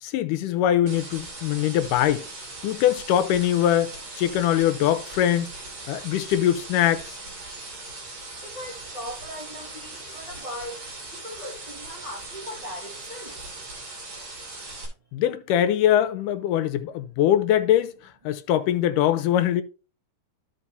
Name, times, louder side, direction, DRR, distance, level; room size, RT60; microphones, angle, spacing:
voice 1, 0.0-2.3 2.6-5.5 5.9-7.2 15.1-17.9 18.3-19.6, left 11 dB, 80° left, 2.3 m, -22 dB
sound 1, 0.9-14.9, right 2 dB, 45° right, 3.6 m, -40 dB
voice 2, 8.4-10.8 11.1-13.3, equal, 25° right, 0.8 m, -39 dB
14.0 x 5.2 x 2.7 m
omnidirectional pair, 3.7 m